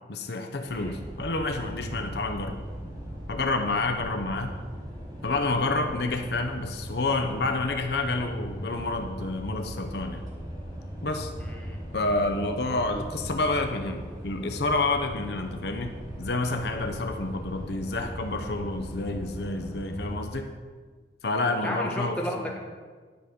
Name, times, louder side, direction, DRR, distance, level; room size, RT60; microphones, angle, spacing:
voice 1, 0.1-2.6 3.3-4.6 5.2-10.2 11.0-11.3 11.9-20.5 21.2-22.5, left 2 dB, 65° left, 5 dB, 0.7 m, -29 dB
sound 1, 0.6-20.2, equal, 20° right, 1.7 m, -39 dB
voice 2, 11.4-11.8 21.6-22.6, left 1 dB, 5° left, -2 dB, 1.3 m, -33 dB
10.0 x 5.2 x 6.4 m, 1.5 s
head